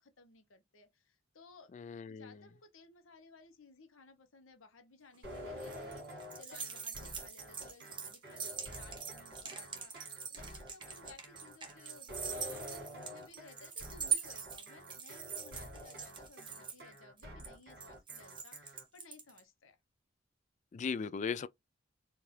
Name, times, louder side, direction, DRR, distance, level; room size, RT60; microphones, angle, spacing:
voice 1, 0.0-1.7 2.1-19.8, left 3 dB, 80° left, 0.9 m, -58 dB
voice 2, 1.7-2.4 20.7-21.5, left 5 dB, 35° left, 0.3 m, -38 dB
sound 1, 5.1-19.4, right 7 dB, 25° right, 1.0 m, -42 dB
sound 2, 5.2-18.8, equal, 55° right, 2.4 m, -49 dB
4.5 x 2.5 x 3.2 m
head